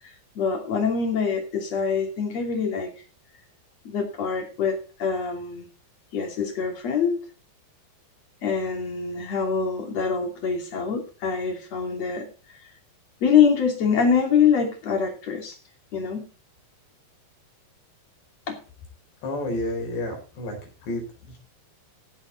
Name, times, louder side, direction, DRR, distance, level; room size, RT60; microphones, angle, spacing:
voice 1, 0.4-2.9 3.9-5.7 6.1-7.2 8.4-12.3 13.2-15.6 15.9-16.3 18.5-18.6, left 6 dB, 40° left, 3 dB, 3.7 m, -24 dB
voice 2, 19.2-20.6 20.8-21.0, left 1 dB, 90° left, 2 dB, 6.6 m, -29 dB
16.0 x 8.1 x 4.1 m, 0.35 s
omnidirectional pair, 4.8 m